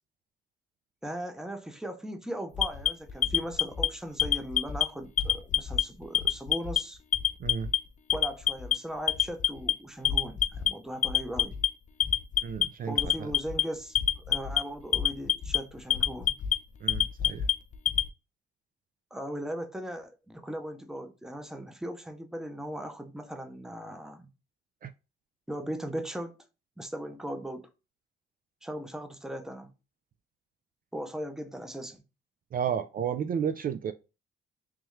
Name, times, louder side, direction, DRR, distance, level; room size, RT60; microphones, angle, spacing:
voice 1, 1.0-7.0 8.1-11.6 12.9-16.4 19.1-24.3 25.5-26.4 26.8-27.7 28.6-29.7 30.9-32.0, equal, ahead, 0.6 m, -38 dB
Alarm, 2.6-3.9 4.2-4.8 5.2-5.8 6.1-6.8 7.1-7.8 8.1-8.7 9.1-9.7 10.0-10.7 11.0-11.7 12.0-12.6 13.0-13.6 13.9-14.6 14.9-15.6 15.9-16.5 16.9-18.1, left 9 dB, 40° left, 0.4 m, -25 dB
voice 2, 12.4-13.3 16.8-17.5 24.8-24.9 32.5-33.9, right 8 dB, 45° right, 0.4 m, -32 dB
3.5 x 3.1 x 3.1 m
cardioid pair, 90°, 20 cm